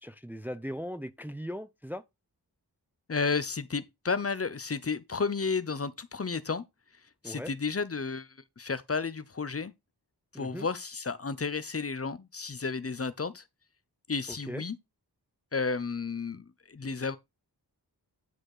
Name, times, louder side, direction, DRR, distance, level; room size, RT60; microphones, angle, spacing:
voice 1, 0.0-2.0 7.2-7.5 10.3-10.7 14.3-14.6, equal, 5° right, 0.6 m, -39 dB
voice 2, 3.1-6.6 7.2-9.7 10.3-13.4 14.1-14.8 15.5-17.2, left 4 dB, 35° left, 0.7 m, -32 dB
10.0 x 4.1 x 4.9 m
wide cardioid pair, 70°, 40 cm